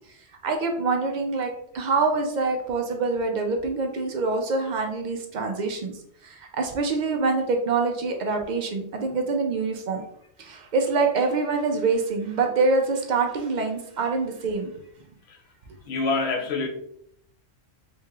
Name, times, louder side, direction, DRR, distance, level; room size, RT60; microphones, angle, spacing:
voice 1, 0.4-10.0 10.4-14.7, right 4 dB, 60° right, 4 dB, 0.4 m, -25 dB
voice 2, 15.9-16.7, left 3 dB, 65° left, 3 dB, 0.8 m, -26 dB
3.4 x 3.2 x 2.3 m, 0.70 s
omnidirectional pair, 1.3 m